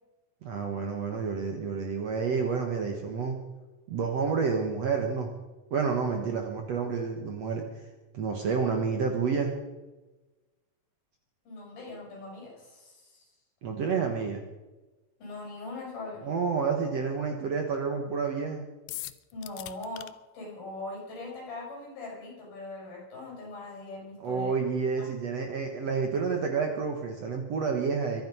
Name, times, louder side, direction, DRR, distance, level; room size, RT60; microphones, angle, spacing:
voice 1, 0.4-3.4 3.9-5.3 5.7-7.8 8.1-9.5 13.6-14.4 16.2-18.7 24.2-28.2, right 5 dB, 55° right, 3 dB, 2.0 m, -29 dB
voice 2, 11.4-13.3 15.2-16.3 19.3-20.1 20.3-24.6 24.9-25.1, left 2 dB, 70° left, -2 dB, 8.3 m, -41 dB
sound 1, 18.9-20.1, left 17 dB, 90° left, 2.6 m, -40 dB
23.5 x 9.5 x 5.6 m, 1.1 s
omnidirectional pair, 4.4 m